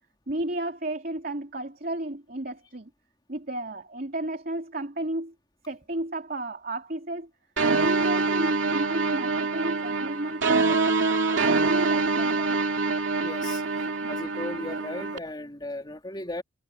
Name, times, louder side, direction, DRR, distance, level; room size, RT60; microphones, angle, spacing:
voice 1, 0.3-2.9 3.3-5.3 5.7-7.3 7.7-10.9 11.3-12.6 14.0-14.3, right 1 dB, 45° right, 2.9 m, -33 dB
sound 1, 7.6-15.2, right 3 dB, 70° right, 2.6 m, -25 dB
voice 2, 13.2-13.6 14.1-16.4, left 1 dB, 20° left, 3.2 m, -36 dB
head